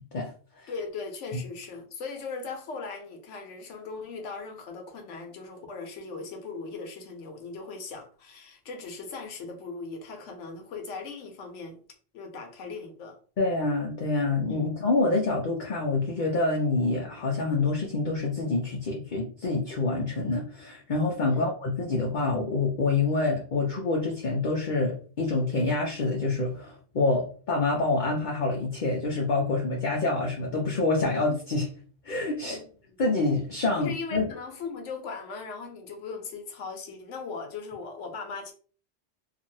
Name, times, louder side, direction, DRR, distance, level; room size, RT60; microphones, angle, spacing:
voice 1, 0.7-11.8 12.1-13.2 14.5-14.7 21.2-21.5 32.4-33.0 33.8-38.5, left 4 dB, 75° left, 4 dB, 1.1 m, -39 dB
voice 2, 13.4-31.7 32.0-32.6 33.0-34.3, left 3 dB, 50° left, -1 dB, 0.6 m, -27 dB
2.9 x 2.5 x 2.6 m, 0.41 s
omnidirectional pair, 1.3 m